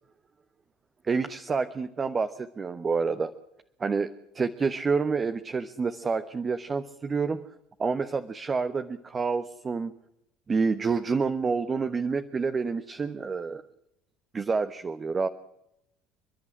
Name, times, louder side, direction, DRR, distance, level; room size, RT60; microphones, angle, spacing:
voice 1, 1.1-3.3 3.8-7.4 7.8-9.9 10.5-13.6 14.3-15.3, right 4 dB, 30° right, 10 dB, 1.1 m, -28 dB
29.5 x 11.0 x 9.9 m, 0.83 s
hypercardioid pair, 70°, 0 cm